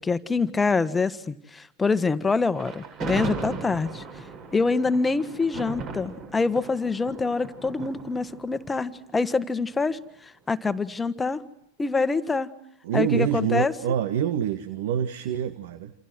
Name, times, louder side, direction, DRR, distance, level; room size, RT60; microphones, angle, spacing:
voice 1, 0.0-4.2 4.5-11.4 11.8-12.5 12.9-13.7, left 4 dB, 15° left, 12 dB, 1.6 m, -25 dB
Thunder, 2.6-9.8, right 4 dB, 35° right, 7.4 m, -37 dB
voice 2, 12.8-15.9, right 9 dB, 60° right, 11 dB, 1.9 m, -26 dB
28.0 x 28.0 x 6.2 m, 0.75 s
hypercardioid pair, 95°, 0 cm